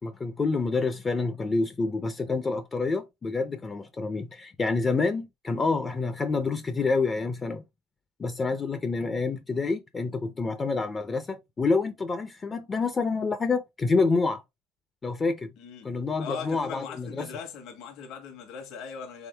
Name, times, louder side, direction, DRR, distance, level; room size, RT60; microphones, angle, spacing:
voice 1, 0.0-7.6 8.2-14.4 15.0-15.5 15.8-17.3, left 4 dB, 20° left, 0.5 m, -27 dB
voice 2, 15.6-15.9 16.2-19.3, left 6 dB, 60° left, 1.4 m, -39 dB
3.7 x 3.6 x 3.3 m
cardioid pair, 130°, 0 cm